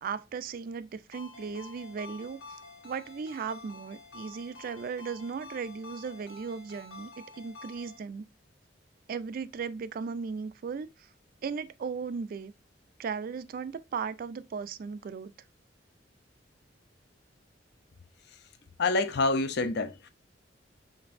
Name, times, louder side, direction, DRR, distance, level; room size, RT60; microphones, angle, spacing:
voice 1, 0.0-2.4 2.8-8.2 9.1-10.9 11.4-12.5 13.0-15.3, right 5 dB, 50° right, 0.3 m, -36 dB
Ringtone, 1.1-8.0, left 3 dB, 90° left, 1.6 m, -49 dB
voice 2, 18.8-20.1, left 3 dB, 60° left, 0.5 m, -27 dB
5.1 x 3.3 x 2.5 m
head